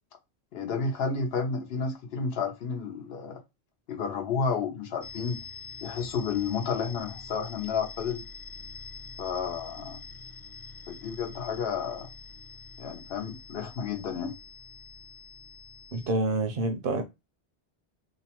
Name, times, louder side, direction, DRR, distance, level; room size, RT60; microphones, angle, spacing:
voice 1, 0.5-3.4 3.9-5.4 5.8-8.2 9.2-10.0 10.9-12.1 12.8-14.3, left 5 dB, 70° left, 0.9 m, -31 dB
sound 1, 5.0-16.1, left 5 dB, 35° left, 0.3 m, -45 dB
voice 2, 15.9-17.0, right 3 dB, 65° right, 0.7 m, -27 dB
2.7 x 2.1 x 2.8 m
omnidirectional pair, 1.1 m